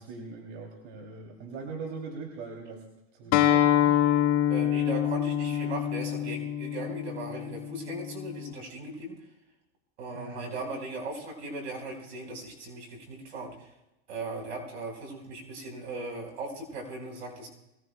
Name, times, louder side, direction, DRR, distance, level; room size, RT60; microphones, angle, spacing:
voice 1, 0.0-2.8 3.1-4.0 10.1-10.5, right 4 dB, 70° right, 0 dB, 2.9 m, -41 dB
Acoustic guitar, 3.3-8.5, left 11 dB, 50° left, 1.8 m, -26 dB
voice 2, 4.4-9.2 10.0-13.7 14.1-17.5, right 2 dB, 90° right, 1 dB, 4.5 m, -38 dB
22.5 x 17.5 x 2.2 m, 0.91 s
supercardioid pair, 115°, 33 cm